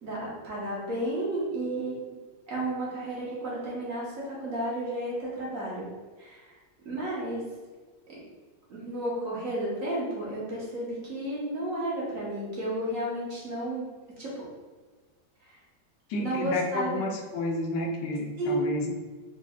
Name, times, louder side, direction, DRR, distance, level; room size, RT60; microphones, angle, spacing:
voice 1, 0.0-2.0 2.5-5.9 6.2-6.6 6.8-7.4 8.7-13.8 14.2-14.3 15.4-15.6 16.1-17.0 18.4-18.5, right 1 dB, 50° right, -6 dB, 1.5 m, -32 dB
voice 2, 16.1-18.9, left 2 dB, 80° left, 1 dB, 1.3 m, -31 dB
4.4 x 3.8 x 2.4 m, 1.4 s
omnidirectional pair, 1.9 m